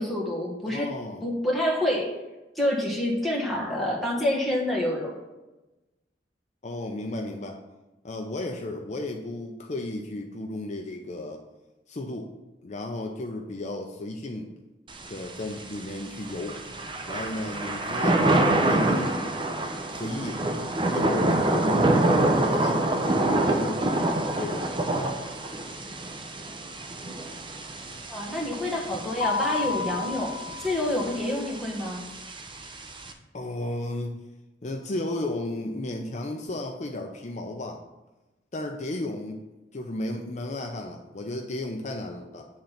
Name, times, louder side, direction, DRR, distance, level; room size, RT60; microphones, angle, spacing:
voice 1, 0.0-0.9 1.2-2.1 2.5-5.1 28.1-30.3 30.6-32.1, left 1 dB, ahead, -4 dB, 1.6 m, -27 dB
voice 2, 0.6-1.2 6.6-7.6 8.0-11.4 11.9-12.3 12.6-14.5 15.1-16.6 17.0-18.2 18.6-19.4 19.9-20.5 20.9-21.9 22.5-23.9 24.3-25.2 33.3-34.2 34.6-37.8 38.5-39.4 39.7-42.5, left 1 dB, 40° left, 2 dB, 0.7 m, -34 dB
Thunder / Rain, 14.9-33.1, right 1 dB, 30° right, 0.7 m, -27 dB
Mallet percussion, 29.2-31.3, left 6 dB, 85° left, 0.7 m, -32 dB
8.7 x 3.9 x 5.8 m, 1.1 s
head